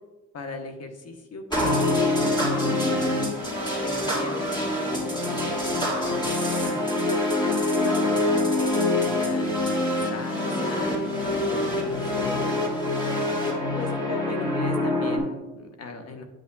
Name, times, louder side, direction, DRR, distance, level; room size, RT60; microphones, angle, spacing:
voice 1, 0.3-1.7 2.1-3.1 3.8-6.9 7.5-7.6 7.8-11.0 11.5-12.7 13.7-16.2, left 3 dB, 55° left, 5 dB, 1.1 m, -38 dB
sound 1, 1.5-15.2, left 1 dB, 15° left, 2.3 m, -25 dB
9.0 x 5.8 x 2.3 m, 1.1 s
cardioid pair, 90°, 30 cm